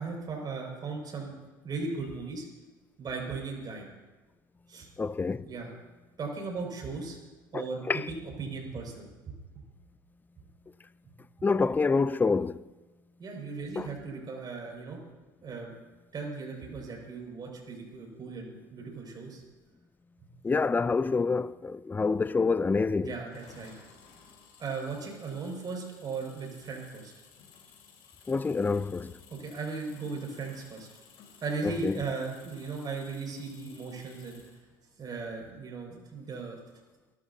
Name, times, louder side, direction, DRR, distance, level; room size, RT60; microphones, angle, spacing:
voice 1, 0.0-1.4 1.6-2.5 3.0-3.9 4.7-4.9 5.4-5.7 6.2-7.2 7.5-7.8 8.1-9.3 11.1-11.2 13.2-15.0 15.4-15.8 16.1-19.4 20.2-20.3 23.0-23.7 24.6-27.1 29.3-30.9 31.4-34.4 35.0-36.6, right 4 dB, 40° right, 6.0 m, -37 dB
voice 2, 5.0-5.5 7.5-8.1 11.4-12.6 13.8-13.9 20.4-23.1 28.3-29.1 31.8-32.0, left 4 dB, 15° left, 0.5 m, -27 dB
sound 1, 23.3-34.7, left 6 dB, 60° left, 4.1 m, -56 dB
28.5 x 13.0 x 2.8 m
hypercardioid pair, 80°, 11 cm